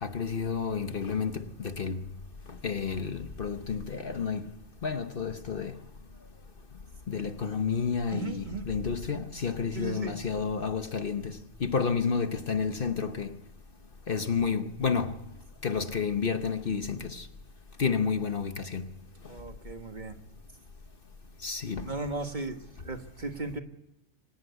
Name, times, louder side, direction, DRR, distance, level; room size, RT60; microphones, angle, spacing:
voice 1, 0.0-2.0 2.6-4.5 4.8-5.8 7.1-13.4 14.1-15.2 15.6-17.3 17.8-18.9 21.4-21.9, left 6 dB, 50° left, 1.1 m, -30 dB
voice 2, 8.1-8.7 9.7-10.2 19.3-20.2 21.8-23.6, right 3 dB, 40° right, 1.7 m, -36 dB
24.5 x 18.0 x 8.1 m
omnidirectional pair, 1.3 m